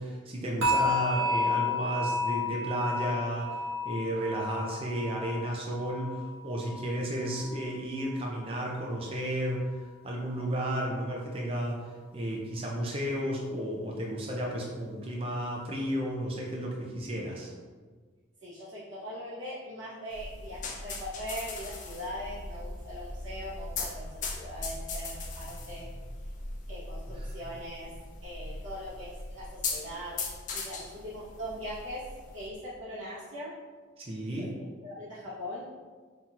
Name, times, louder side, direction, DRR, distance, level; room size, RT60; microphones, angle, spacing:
voice 1, 0.0-11.9 12.1-17.5 27.1-27.3 34.0-34.5, right 1 dB, 25° right, -2 dB, 0.4 m, -33 dB
sound 1, 0.6-7.7 8.0-8.4 8.9-9.0, left 2 dB, 85° right, 1.1 m, -32 dB
voice 2, 18.4-25.9 26.7-27.9 28.2-30.2 30.5-32.0 32.3-33.5 34.4-34.5 34.8-35.6, equal, 60° right, -9 dB, 0.8 m, -41 dB
sound 2, 20.1-32.5, left 3 dB, 35° left, 0.4 m, -39 dB
5.6 x 2.9 x 2.4 m, 1.5 s
head